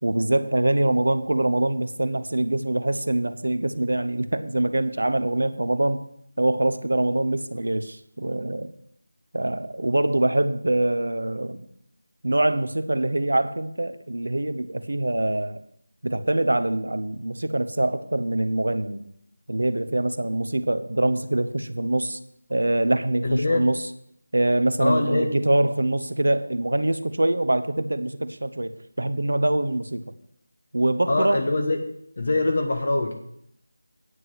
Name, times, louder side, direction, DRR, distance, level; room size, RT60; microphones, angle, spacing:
voice 1, 0.0-6.0 6.4-8.7 9.3-11.7 12.2-15.6 16.0-19.0 19.5-22.2 22.5-23.8 24.3-28.7 29.0-30.0 30.7-31.4, right 1 dB, 75° right, 10 dB, 0.9 m, -24 dB
voice 2, 23.2-23.7 24.8-25.3 31.1-31.8 32.2-33.1, left 2 dB, 50° left, 4 dB, 1.3 m, -23 dB
9.5 x 7.8 x 6.1 m, 0.73 s
figure-of-eight pair, 170°, 0 cm